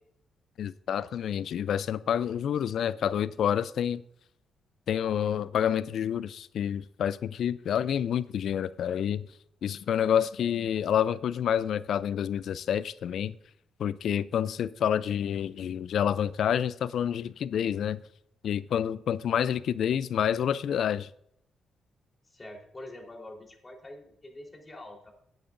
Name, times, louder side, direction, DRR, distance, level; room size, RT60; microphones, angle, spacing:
voice 1, 0.6-4.0 4.9-9.3 9.6-13.4 13.8-18.0 18.4-21.1, left 9 dB, 70° left, 0.4 m, -28 dB
voice 2, 22.2-25.1, left 1 dB, 25° left, 3.7 m, -46 dB
16.5 x 9.1 x 2.6 m
hypercardioid pair, 45°, 0 cm